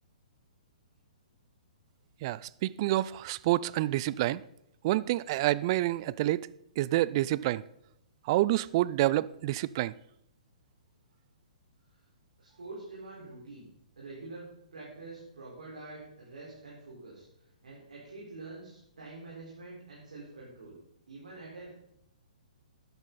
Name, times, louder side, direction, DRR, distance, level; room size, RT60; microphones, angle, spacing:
voice 1, 2.2-4.4 4.8-6.5 6.8-7.6 8.3-9.9, right 16 dB, 40° right, 0.4 m, -28 dB
voice 2, 12.4-13.7 14.0-17.2 17.6-20.8 21.1-21.8, right 3 dB, 75° right, 4.6 m, -46 dB
12.5 x 10.5 x 4.1 m
figure-of-eight pair, 125°, 4 cm